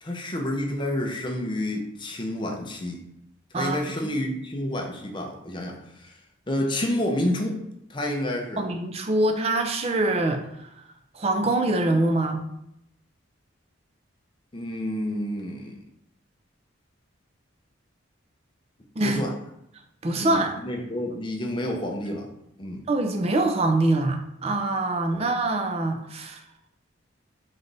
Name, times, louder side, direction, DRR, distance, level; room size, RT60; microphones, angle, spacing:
voice 1, 0.0-3.0 3.5-6.2 6.5-7.6 7.9-8.7 14.5-15.8 19.0-19.3 20.2-22.3 22.6-22.8 25.1-25.2, left 1 dB, 25° left, 1 dB, 0.6 m, -29 dB
voice 2, 3.5-4.1 8.6-10.7 11.1-12.4 19.0-19.2 20.0-20.5 22.9-26.4, right 2 dB, 30° right, 4 dB, 0.4 m, -24 dB
4.0 x 3.3 x 3.9 m, 0.80 s
head